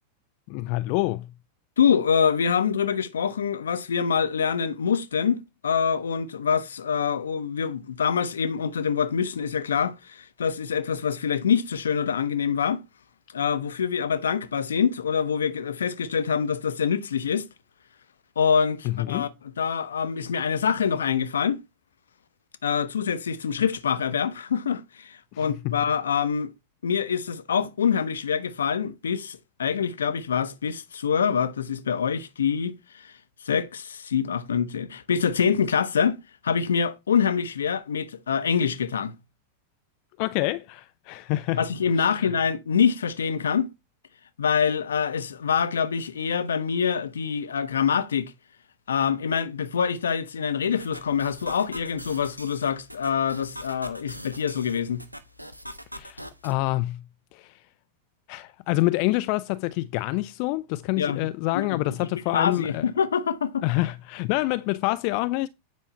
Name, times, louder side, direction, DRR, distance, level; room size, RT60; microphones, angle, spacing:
voice 1, 0.5-1.3 18.8-19.3 25.3-25.8 40.2-41.6 42.0-42.3 55.9-57.0 57.3-57.6 58.3-62.9 63.6-65.5, left 19 dB, 45° left, 0.4 m, -27 dB
voice 2, 1.8-12.8 13.3-17.5 18.4-19.3 19.6-21.6 22.6-26.5 26.8-33.1 33.4-36.2 36.4-39.1 41.6-43.7 44.4-48.3 48.9-55.0 61.0-61.3 61.5-63.6, left 7 dB, 70° left, 0.8 m, -25 dB
sound 1, 50.8-56.5, equal, 90° right, 1.0 m, -42 dB
9.3 x 5.5 x 4.4 m
figure-of-eight pair, 90°, 0 cm